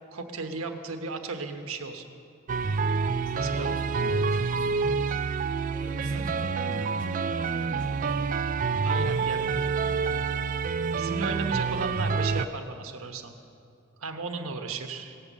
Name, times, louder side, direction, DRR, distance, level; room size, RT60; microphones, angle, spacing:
voice 1, 0.1-2.0 3.3-3.7 5.9-6.2 8.8-9.4 10.9-13.3 14.0-15.1, right 3 dB, 85° right, 4 dB, 1.1 m, -35 dB
sound 1, 2.5-12.5, right 5 dB, 40° right, 0.3 m, -27 dB
voice 2, 3.2-5.2 5.8-8.3 8.9-10.4, equal, 60° left, -3 dB, 2.7 m, -45 dB
17.5 x 6.9 x 7.3 m, 2.5 s
head